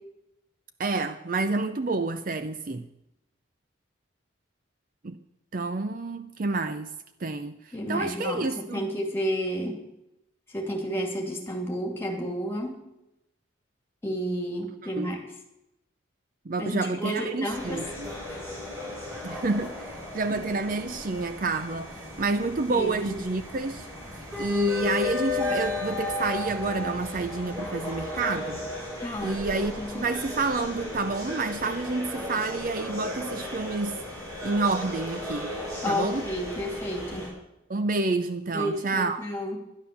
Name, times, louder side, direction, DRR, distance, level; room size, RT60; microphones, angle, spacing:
voice 1, 0.8-2.9 5.0-5.2 5.5-6.9 7.2-8.9 14.8-15.1 16.5-18.1 19.2-23.9 24.4-28.6 29.2-34.0 34.4-35.5 35.9-36.2 37.7-39.3, right 3 dB, 40° right, 0.5 m, -29 dB
voice 2, 7.7-9.8 10.5-12.8 14.0-15.3 16.6-17.8 18.3-18.4 22.7-23.2 29.0-29.4 29.8-30.0 35.8-37.3 38.5-39.6, equal, 10° left, 2.5 m, -31 dB
sound 1, 17.5-37.3, left 3 dB, 15° right, 6.9 m, -34 dB
11.5 x 11.0 x 6.9 m
head